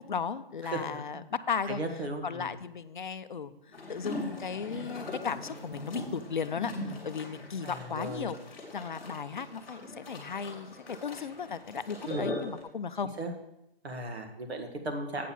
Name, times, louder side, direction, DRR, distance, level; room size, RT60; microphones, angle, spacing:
voice 1, 0.0-1.8 2.2-8.4 8.7-13.2, left 6 dB, 50° left, 13 dB, 0.4 m, -36 dB
voice 2, 0.6-1.0 1.6-2.6 7.6-8.3 12.1-12.4 13.2-13.3 13.8-15.3, right 2 dB, 85° right, 4 dB, 1.7 m, -36 dB
sound 1, 3.7-12.6, left 2 dB, 5° left, 1.2 m, -41 dB
8.4 x 4.2 x 7.1 m, 0.88 s
hypercardioid pair, 175°, 31 cm